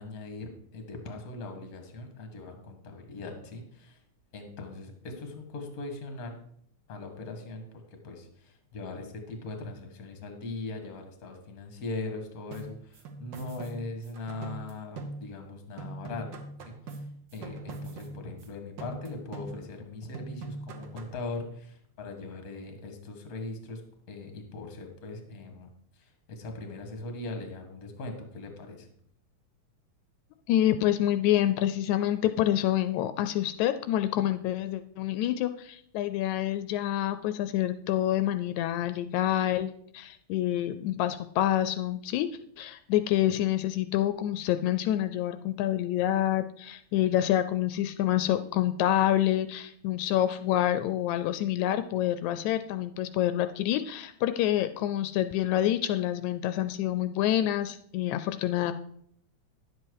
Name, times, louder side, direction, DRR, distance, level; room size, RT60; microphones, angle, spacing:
voice 1, 0.0-4.0 4.3-6.4 6.9-7.6 8.0-16.3 16.7-16.8 17.3-23.8 24.1-25.7 26.0-28.9, left 2 dB, 40° left, 5 dB, 1.6 m, -40 dB
sound 1, 12.5-15.5 15.8-18.5 18.8-19.9 20.1-21.2, right 3 dB, 60° right, 1.2 m, -42 dB
voice 2, 30.5-39.7 39.9-42.3 42.6-58.7, left 12 dB, 85° left, 10 dB, 1.9 m, -27 dB
10.5 x 7.7 x 4.7 m, 0.66 s
omnidirectional pair, 3.3 m